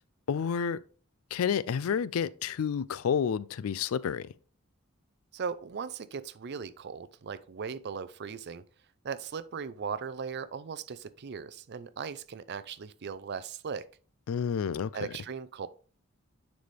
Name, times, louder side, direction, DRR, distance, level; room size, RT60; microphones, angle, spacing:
voice 1, 0.3-0.8 1.3-4.3 14.3-14.9, left 7 dB, 90° left, 0.4 m, -29 dB
voice 2, 5.3-8.6 9.0-13.9 14.9-15.7, right 6 dB, 55° right, 0.5 m, -38 dB
9.5 x 4.2 x 3.3 m
head